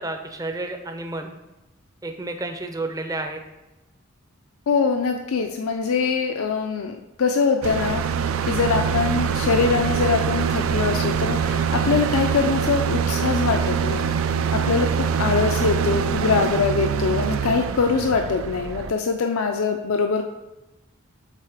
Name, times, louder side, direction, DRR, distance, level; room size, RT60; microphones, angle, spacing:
voice 1, 0.0-1.3 2.0-3.4, right 2 dB, 15° right, 5 dB, 0.5 m, -31 dB
voice 2, 4.7-14.1 14.5-20.2, left 5 dB, 80° left, 5 dB, 0.5 m, -23 dB
sound 1, 7.6-18.9, right 7 dB, 75° right, 0.4 m, -24 dB
7.5 x 4.1 x 4.9 m, 1.0 s
head